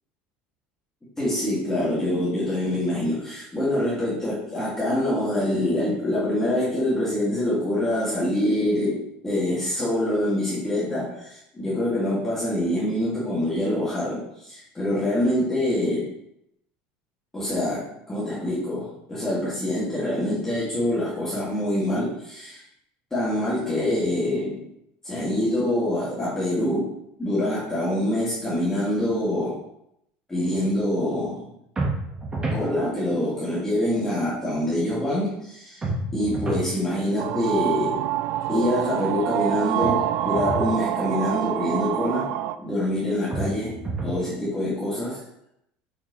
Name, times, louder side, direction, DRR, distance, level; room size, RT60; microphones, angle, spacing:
voice 1, 1.2-16.1 17.3-22.6 23.1-24.6 25.0-29.6 30.3-31.4 32.5-35.9 36.1-38.1 38.5-42.3 42.6-45.2, left 1 dB, 10° left, -9 dB, 2.2 m, -25 dB
sound 1, 31.8-32.7 35.8-36.7 39.8-40.7 43.3-44.2, right 2 dB, 20° right, 1.4 m, -29 dB
sound 2, 37.2-42.6, right 12 dB, 60° right, 0.4 m, -26 dB
6.9 x 5.7 x 3.1 m, 0.78 s
cardioid pair, 140°, 4 cm